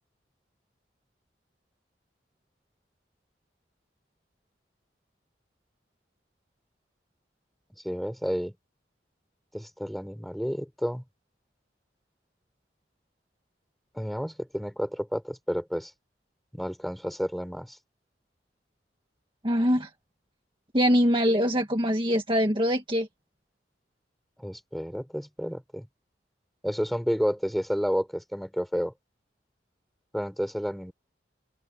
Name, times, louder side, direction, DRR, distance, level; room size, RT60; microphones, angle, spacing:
voice 1, 7.8-8.5 9.5-11.0 13.9-15.9 16.5-17.8 24.4-25.9 26.6-28.9 30.1-30.9, equal, ahead, 4.8 m, -30 dB
voice 2, 19.4-19.9 20.7-23.1, equal, 30° right, 1.8 m, -23 dB
open air
head